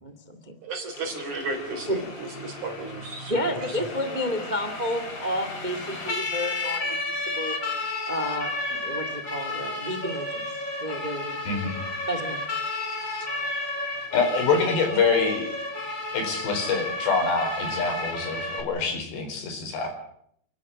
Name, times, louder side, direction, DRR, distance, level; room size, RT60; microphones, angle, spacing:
voice 1, 0.0-0.4 1.9-2.0 3.3-7.6 8.1-10.5 10.8-11.4 12.1-12.4, equal, 70° right, 8 dB, 0.4 m, -31 dB
voice 2, 0.6-3.9, right 2 dB, 45° right, 3 dB, 4.9 m, -34 dB
Siren, 0.9-18.6, left 2 dB, 30° left, 2.9 m, -32 dB
voice 3, 14.1-15.5 16.1-19.9, left 4 dB, 75° left, 5 dB, 6.6 m, -25 dB
29.5 x 12.0 x 8.4 m, 0.69 s
omnidirectional pair, 4.9 m